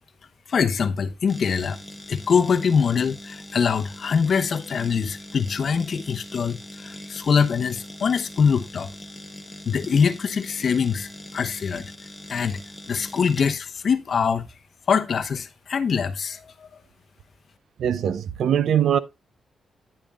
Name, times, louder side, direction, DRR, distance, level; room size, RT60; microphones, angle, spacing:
voice 1, 0.5-1.8 2.1-8.9 9.7-11.9 12.3-12.6 12.9-14.5 14.9-16.4, left 6 dB, 55° left, 0.9 m, -23 dB
sound 1, 1.3-14.5, equal, 5° left, 1.5 m, -41 dB
voice 2, 17.8-19.0, right 9 dB, 80° right, 0.6 m, -21 dB
10.0 x 8.7 x 2.4 m
cardioid pair, 115°, 0 cm